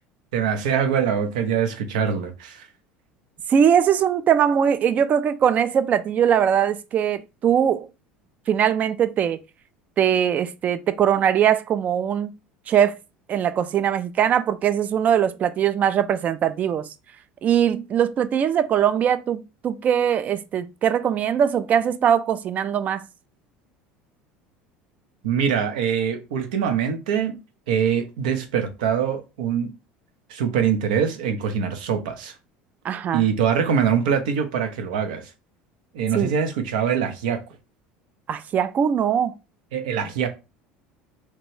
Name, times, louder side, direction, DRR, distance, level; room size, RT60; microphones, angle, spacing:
voice 1, 0.3-2.7 25.2-27.4 27.7-29.7 30.3-32.3 33.1-35.3 35.9-37.4 39.7-40.3, right 7 dB, 85° right, 0.6 m, -23 dB
voice 2, 3.5-7.9 8.5-9.4 10.0-12.3 12.7-12.9 13.3-16.9 17.4-23.1 32.8-33.2 36.1-36.3 38.3-39.3, right 9 dB, 40° right, 0.3 m, -21 dB
2.9 x 2.2 x 3.1 m
supercardioid pair, 100°, 4 cm